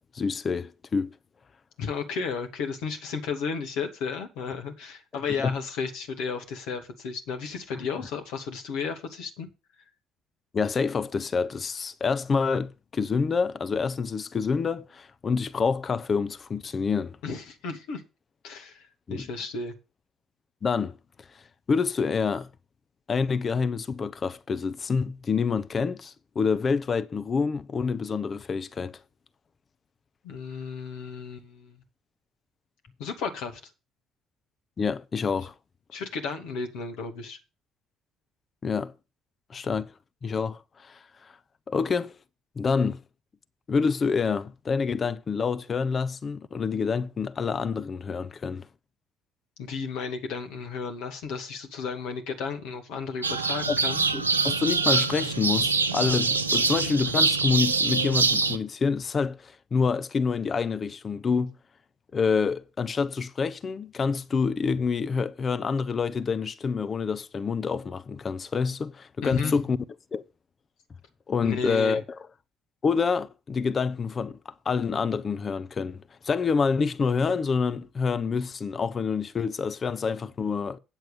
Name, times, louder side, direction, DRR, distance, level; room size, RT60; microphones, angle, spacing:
voice 1, 0.1-1.1 5.4-5.5 10.5-17.2 19.1-19.3 20.6-21.0 21.7-22.5 23.1-29.0 34.8-35.5 38.6-38.9 39.5-39.9 40.2-41.0 41.7-42.2 42.6-43.0 43.7-48.7 53.7-53.8 54.1-61.5 62.1-69.8 70.1-70.2 71.3-72.0 72.8-80.8, left 5 dB, 35° left, 0.9 m, -27 dB
voice 2, 1.8-9.5 17.2-18.0 18.4-19.7 30.2-31.8 33.0-33.6 35.9-37.4 49.6-54.0 69.2-69.6 71.4-72.0, left 5 dB, 65° left, 2.3 m, -33 dB
sound 1, 53.2-58.6, right 4 dB, 90° right, 0.6 m, -24 dB
9.2 x 7.5 x 5.2 m
figure-of-eight pair, 50°, 0 cm